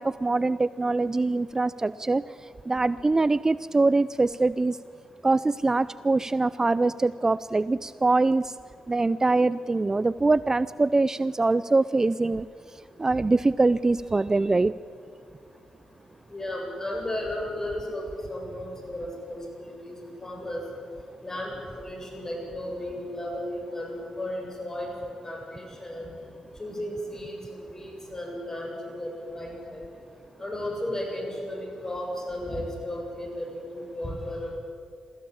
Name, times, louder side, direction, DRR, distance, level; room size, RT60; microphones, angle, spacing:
voice 1, 0.0-2.2 2.7-4.8 5.2-8.4 8.9-12.5 13.0-14.7, right 3 dB, 25° right, 17 dB, 0.4 m, -23 dB
voice 2, 16.3-20.6 21.2-24.9 25.2-26.1 26.6-27.4 27.7-29.8 30.4-34.6, left 1 dB, 25° left, 1 dB, 7.7 m, -34 dB
22.0 x 14.5 x 8.7 m, 2.3 s
supercardioid pair, 45°, 2 cm